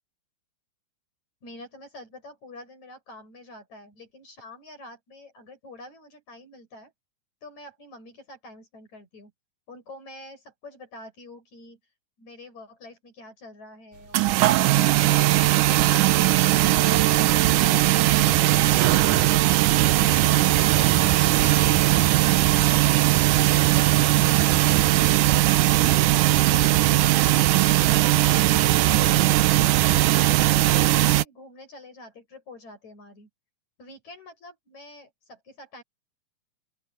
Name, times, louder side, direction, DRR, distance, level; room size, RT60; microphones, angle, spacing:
voice 1, 1.4-6.9 7.4-9.3 9.7-11.8 12.2-16.8 17.2-19.5 20.1-23.1 23.7-26.3 26.6-30.2 30.8-33.3 33.8-35.8, left 2 dB, 55° left, 9.4 m, -46 dB
sound 1, 14.1-31.2, right 15 dB, 75° right, 2.2 m, -19 dB
open air
omnidirectional pair, 4.0 m